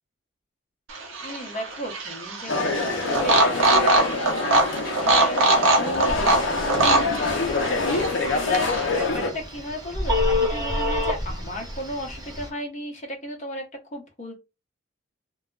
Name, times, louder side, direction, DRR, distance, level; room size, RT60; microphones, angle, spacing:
sound 1, 0.9-9.1, right 2 dB, 80° right, 0.7 m, -23 dB
voice 1, 1.2-8.7 8.9-13.6 13.9-14.3, equal, 35° left, 1 dB, 0.8 m, -35 dB
sound 2, 2.5-9.3, left 3 dB, 70° left, 0.6 m, -25 dB
Telephone, 6.1-12.5, left 2 dB, 20° right, 0.9 m, -29 dB
2.3 x 2.1 x 3.6 m, 0.26 s
head